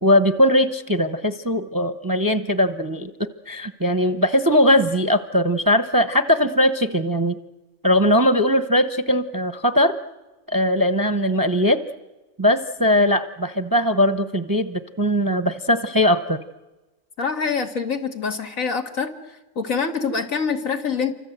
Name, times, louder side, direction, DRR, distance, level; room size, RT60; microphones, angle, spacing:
voice 1, 0.0-3.1 3.5-7.4 7.8-9.9 10.5-11.8 12.4-16.4, equal, 20° right, 9 dB, 0.7 m, -20 dB
voice 2, 17.2-19.1 19.6-21.1, left 5 dB, 75° left, 4 dB, 2.4 m, -25 dB
28.5 x 25.0 x 8.0 m, 1.1 s
omnidirectional pair, 1.4 m